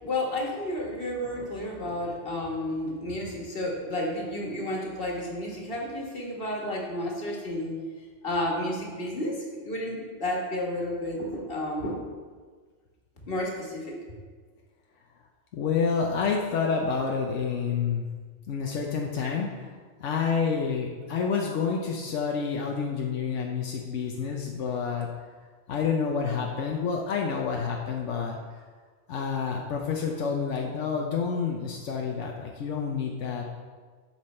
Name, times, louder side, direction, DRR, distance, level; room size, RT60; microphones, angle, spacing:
voice 1, 0.0-7.7 8.2-9.3 9.6-11.9 13.3-14.0, left 1 dB, 50° left, -2 dB, 1.8 m, -31 dB
voice 2, 15.5-18.1 18.5-25.1 25.7-28.4 29.1-33.4, left 5 dB, 85° left, 0 dB, 1.1 m, -28 dB
9.3 x 5.9 x 4.4 m, 1.5 s
omnidirectional pair, 1.2 m